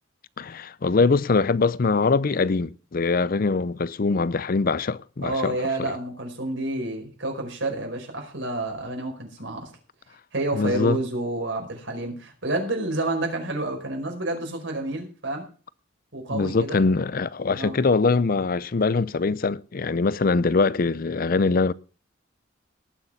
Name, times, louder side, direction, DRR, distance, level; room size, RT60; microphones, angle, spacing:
voice 1, 0.4-5.9 10.5-11.0 16.3-21.7, left 4 dB, 50° left, 0.5 m, -23 dB
voice 2, 5.2-9.7 10.3-15.5 16.1-16.8 17.5-17.8, right 2 dB, 75° right, 5.1 m, -29 dB
19.0 x 6.6 x 5.6 m
head